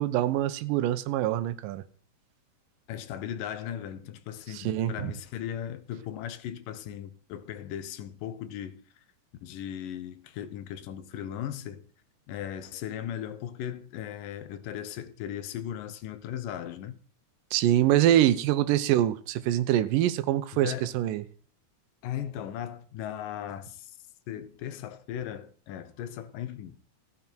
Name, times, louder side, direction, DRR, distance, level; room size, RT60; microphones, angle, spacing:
voice 1, 0.0-1.8 4.5-5.1 17.5-21.2, right 12 dB, 90° right, 2.4 m, -25 dB
voice 2, 2.9-8.8 9.4-11.9 12.3-17.0 20.5-20.9 22.0-23.9 24.3-26.8, left 10 dB, 85° left, 2.5 m, -37 dB
14.5 x 8.8 x 4.4 m
omnidirectional pair, 3.8 m